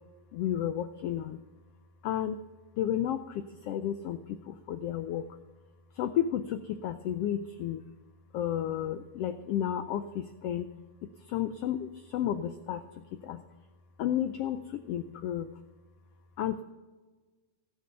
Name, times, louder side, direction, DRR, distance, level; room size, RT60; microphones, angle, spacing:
voice 1, 0.3-1.4 2.0-2.4 2.8-5.3 5.9-7.8 8.3-10.7 11.0-13.4 14.0-15.5 16.4-16.6, left 10 dB, 85° left, 9 dB, 1.3 m, -32 dB
16.5 x 6.4 x 6.8 m, 1.3 s
omnidirectional pair, 3.4 m